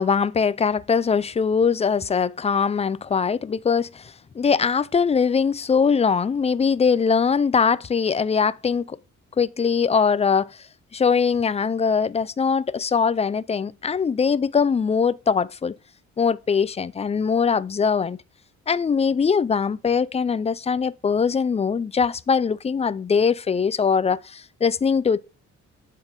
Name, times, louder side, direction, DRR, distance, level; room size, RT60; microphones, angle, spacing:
voice 1, 0.0-9.0 9.4-10.7 10.9-15.7 16.2-18.2 18.7-25.2, left 6 dB, 20° left, 0.4 m, -22 dB
9.6 x 3.8 x 5.1 m
cardioid pair, 90°, 30 cm